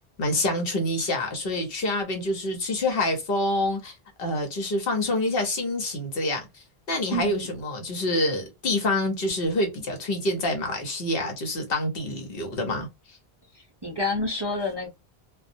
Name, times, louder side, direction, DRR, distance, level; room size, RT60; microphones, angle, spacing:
voice 1, 0.2-12.9, left 1 dB, 65° left, 1.0 m, -27 dB
voice 2, 7.1-7.5 13.5-14.9, left 2 dB, 35° right, 0.4 m, -29 dB
2.2 x 2.1 x 2.5 m
omnidirectional pair, 1.1 m